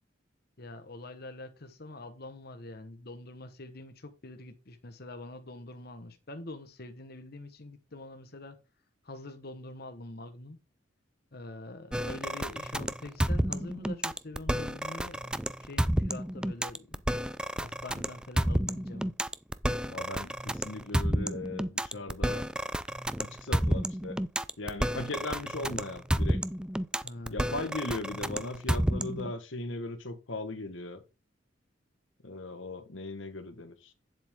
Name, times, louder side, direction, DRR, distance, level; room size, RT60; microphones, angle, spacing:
voice 1, 0.6-8.6 9.0-10.6 11.3-17.0 17.6-19.1 26.9-27.4, left 2 dB, 55° left, 1.3 m, -45 dB
sound 1, 11.9-29.3, right 1 dB, 5° right, 0.4 m, -30 dB
voice 2, 19.9-22.4 23.2-24.2 24.6-26.4 27.3-31.0 32.2-33.9, left 2 dB, 85° left, 1.4 m, -38 dB
9.4 x 7.9 x 3.7 m
head